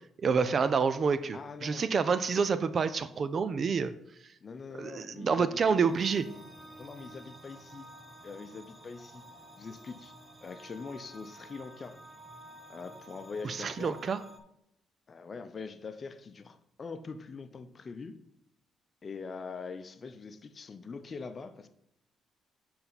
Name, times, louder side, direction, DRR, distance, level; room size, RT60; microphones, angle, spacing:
voice 1, 0.2-3.9 4.8-6.3 13.4-14.2, right 5 dB, 45° right, 13 dB, 0.4 m, -28 dB
voice 2, 1.3-1.9 4.4-5.6 6.8-7.9 8.2-9.2 9.6-10.1 10.4-12.0 12.7-14.0 15.1-18.2 19.0-21.7, left 4 dB, 40° left, 10 dB, 0.6 m, -43 dB
sound 1, 5.5-14.4, right 1 dB, 15° right, 0.7 m, -51 dB
7.7 x 4.2 x 4.0 m, 0.78 s
cardioid pair, 90°, 0 cm